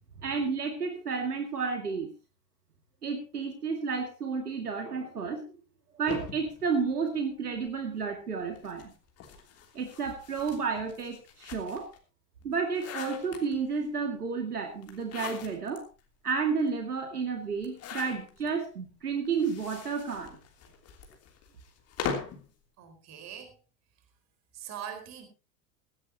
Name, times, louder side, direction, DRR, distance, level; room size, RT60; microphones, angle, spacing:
voice 1, 0.2-2.1 3.0-5.5 5.9-8.9 9.7-11.9 12.4-15.9 16.2-20.4, right 5 dB, 75° right, 5 dB, 2.4 m, -31 dB
sound 1, 6.1-7.7 8.5-12.0 12.4-13.8 14.8-15.8 16.3-16.4 16.6-16.7 17.6-18.5 19.3-22.5, left 6 dB, 30° left, 3.3 m, -41 dB
voice 2, 22.8-23.5 24.5-25.3, right 9 dB, 35° right, 7 dB, 4.4 m, -42 dB
17.0 x 16.0 x 2.9 m, 0.28 s
figure-of-eight pair, 85°, 46 cm